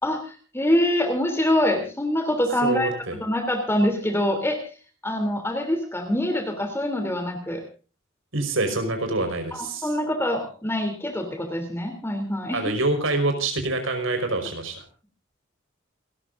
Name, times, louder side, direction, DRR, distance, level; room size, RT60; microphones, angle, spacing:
voice 1, 0.0-2.9 3.2-4.6 5.0-7.6 9.8-12.6, left 1 dB, 10° left, 5 dB, 3.1 m, -25 dB
voice 2, 2.6-3.2 8.3-9.9 12.5-14.8, right 2 dB, 75° right, 5 dB, 5.1 m, -26 dB
29.0 x 13.5 x 2.6 m, 0.36 s
head